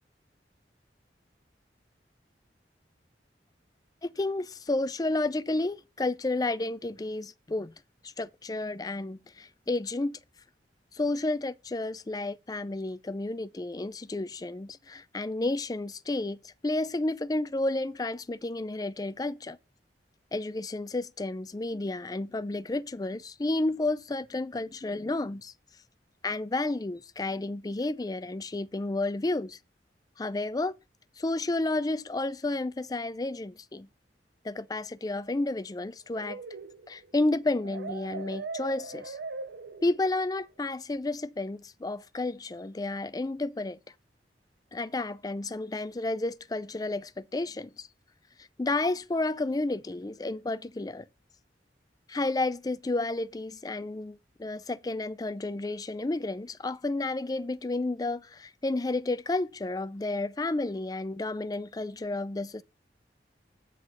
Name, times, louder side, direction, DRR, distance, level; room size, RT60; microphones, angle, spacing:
voice 1, 4.0-7.7 8.0-10.1 10.9-19.6 20.3-25.5 26.2-29.6 30.2-30.8 31.2-33.9 34.4-36.4 36.9-39.2 39.8-43.8 44.7-47.9 48.6-51.1 52.1-62.6, left 2 dB, 20° left, 0.4 m, -31 dB
sound 1, 36.1-40.2, right 4 dB, 75° right, 0.6 m, -40 dB
8.0 x 5.3 x 5.5 m
head